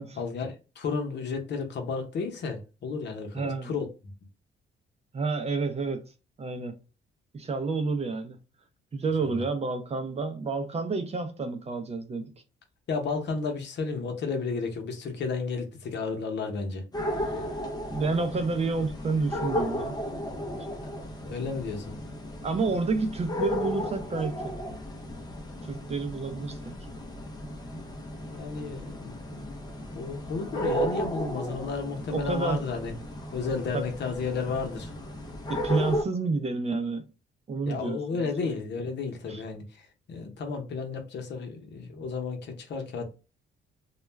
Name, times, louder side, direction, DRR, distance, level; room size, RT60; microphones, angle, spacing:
voice 1, 0.0-3.9 9.2-9.4 12.9-16.8 17.2-17.5 20.8-20.9 21.2-22.0 28.3-29.5 29.9-32.9 33.3-34.9 37.7-43.1, left 4 dB, 60° left, 0.8 m, -33 dB
voice 2, 3.3-3.7 5.1-6.0 6.4-6.7 7.3-8.4 8.9-12.3 17.9-20.0 20.6-20.7 22.4-24.5 25.7-26.7 32.1-32.6 33.7-33.8 35.5-37.0 37.5-38.3 39.3-39.4, right 3 dB, 30° right, 0.6 m, -29 dB
sound 1, 16.9-36.0, equal, 20° left, 0.6 m, -34 dB
2.3 x 2.1 x 3.1 m
cardioid pair, 90°, 20 cm